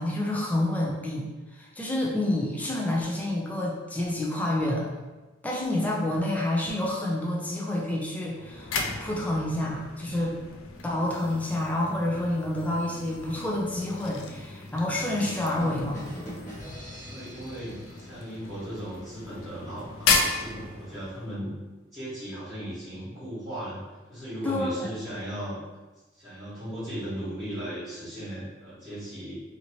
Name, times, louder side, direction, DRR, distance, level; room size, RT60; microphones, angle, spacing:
voice 1, 0.0-4.9 5.4-10.3 10.8-16.1 24.4-24.9, left 1 dB, 10° left, -4 dB, 0.4 m, -28 dB
sound 1, 8.3-21.3, left 4 dB, 90° left, 0.4 m, -34 dB
sound 2, 15.3-19.0, equal, 40° left, 0.9 m, -44 dB
voice 2, 17.0-21.5 21.9-23.8 24.1-25.6 26.1-29.3, equal, 10° right, -15 dB, 1.4 m, -37 dB
2.9 x 2.7 x 2.9 m, 1.2 s
head